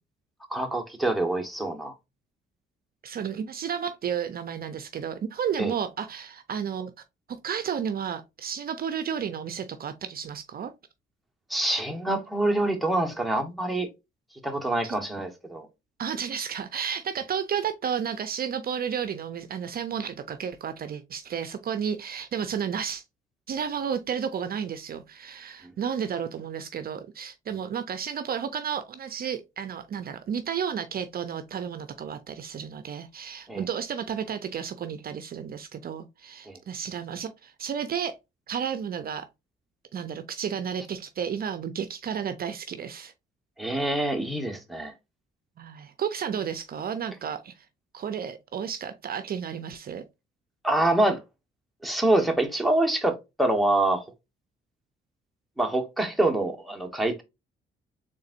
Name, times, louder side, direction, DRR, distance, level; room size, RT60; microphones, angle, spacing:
voice 1, 0.5-1.9 5.6-5.7 11.5-13.9 14.4-15.7 33.5-33.6 36.5-36.6 43.6-44.9 50.6-51.2 51.8-54.0 55.6-57.2, right 1 dB, ahead, 1.1 m, -25 dB
voice 2, 3.0-6.9 7.4-10.7 14.8-14.9 16.0-23.0 23.5-38.2 38.5-39.3 39.9-43.1 45.6-47.7 47.9-50.0, right 8 dB, 50° right, 0.5 m, -32 dB
3.9 x 3.6 x 2.5 m
cardioid pair, 90°, 20 cm